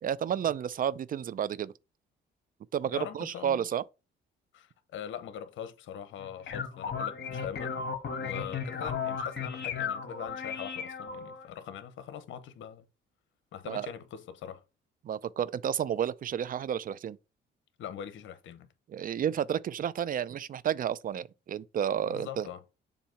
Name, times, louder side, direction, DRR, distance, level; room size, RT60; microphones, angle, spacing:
voice 1, 0.0-1.7 2.7-3.8 13.7-13.9 15.0-17.2 18.9-22.5, right 9 dB, 45° right, 0.4 m, -31 dB
voice 2, 2.9-3.7 4.5-7.8 8.2-12.8 13.5-14.6 17.8-18.7 22.1-22.6, left 9 dB, 75° left, 0.9 m, -42 dB
sound 1, 6.2-11.4, left 6 dB, 60° left, 1.7 m, -35 dB
7.1 x 2.7 x 5.7 m
cardioid pair, 90°, 20 cm